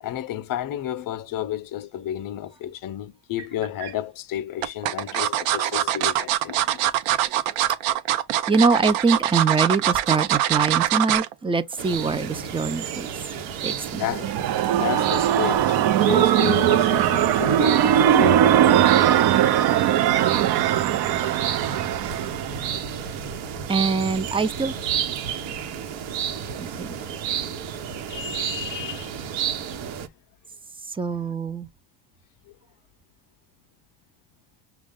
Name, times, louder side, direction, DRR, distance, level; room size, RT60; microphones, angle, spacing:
voice 1, 0.0-6.9 14.0-14.3 14.8-19.1 28.1-29.1, left 11 dB, 45° left, 0.6 m, -31 dB
sound 1, 3.4-3.9 4.6-11.3 11.7-11.9 12.2-12.3, right 12 dB, 85° right, 0.9 m, -23 dB
voice 2, 8.5-13.1 13.6-14.0 23.7-24.7 26.6-27.0 30.9-31.7, right 4 dB, 10° right, 0.3 m, -24 dB
sound 2, 11.8-30.1, right 8 dB, 65° right, 1.1 m, -31 dB
sound 3, 14.0-22.8, right 11 dB, 50° right, 0.7 m, -20 dB
6.3 x 2.3 x 3.5 m
supercardioid pair, 105°, 50 cm